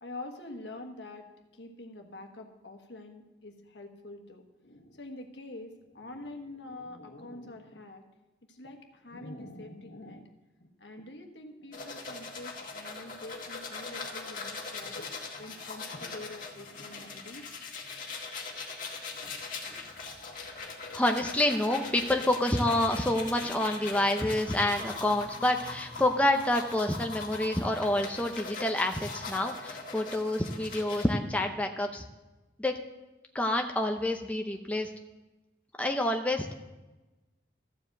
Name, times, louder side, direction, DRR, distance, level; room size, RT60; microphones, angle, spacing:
voice 1, 0.0-1.3 1.5-8.0 8.5-10.2 10.6-15.1 15.4-17.5, left 2 dB, 75° left, 4 dB, 1.4 m, -45 dB
sound 1, 11.7-31.1, left 4 dB, 45° left, 1.9 m, -41 dB
Dog, 19.6-28.3, equal, 10° right, 1.5 m, -52 dB
voice 2, 20.9-32.0 32.6-32.7 33.3-34.9 35.8-36.5, left 1 dB, 10° left, 3 dB, 0.6 m, -28 dB
14.0 x 5.0 x 7.9 m, 1.1 s
head